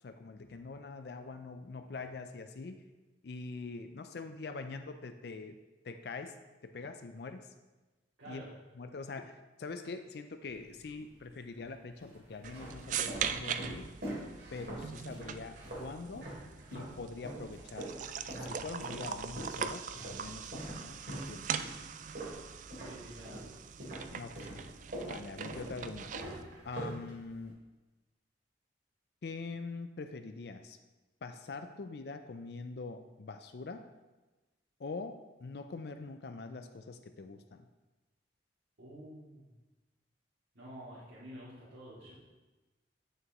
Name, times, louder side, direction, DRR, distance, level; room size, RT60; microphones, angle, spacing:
voice 1, 0.0-2.8 3.2-5.6 5.8-6.4 6.6-7.5 8.3-8.4 8.7-13.9 14.5-16.3 16.7-17.9 18.3-21.5 24.1-24.6 25.0-26.1 26.6-27.6 29.2-30.8 31.2-33.8 34.8-37.7, left 4 dB, 60° left, 8 dB, 0.4 m, -44 dB
voice 2, 8.2-8.5 22.8-23.4 38.8-39.5 40.5-42.2, right 1 dB, 80° right, -11 dB, 2.6 m, -49 dB
sound 1, 10.4-11.1 11.8-17.0 17.2-23.5 23.8-27.5, right 1 dB, 60° right, 2.8 m, -44 dB
sound 2, 12.4-26.4, right 7 dB, 40° right, 0.3 m, -41 dB
9.1 x 6.6 x 3.0 m, 1.1 s
head